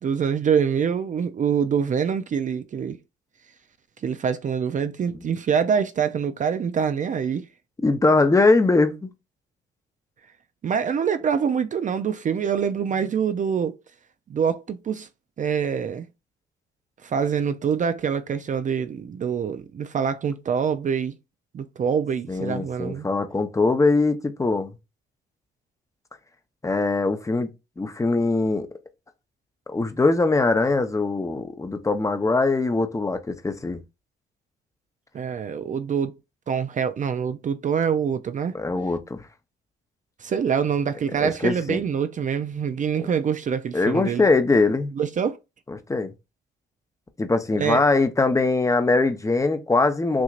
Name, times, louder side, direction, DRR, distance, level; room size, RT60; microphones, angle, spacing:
voice 1, 0.0-3.0 4.0-7.5 10.6-13.8 14.3-15.1 15.4-16.1 17.0-21.1 21.5-23.0 35.1-36.1 36.5-38.5 40.2-44.2 45.0-45.4 47.6-47.8, right 7 dB, 40° right, 0.4 m, -25 dB
voice 2, 7.8-9.1 22.3-24.7 26.6-27.5 27.8-28.7 29.7-33.8 38.5-39.2 41.2-41.8 43.0-43.1 43.7-44.9 45.7-46.1 47.2-50.2, left 3 dB, 15° left, 0.7 m, -22 dB
6.0 x 2.8 x 2.4 m
cardioid pair, 90°, 20 cm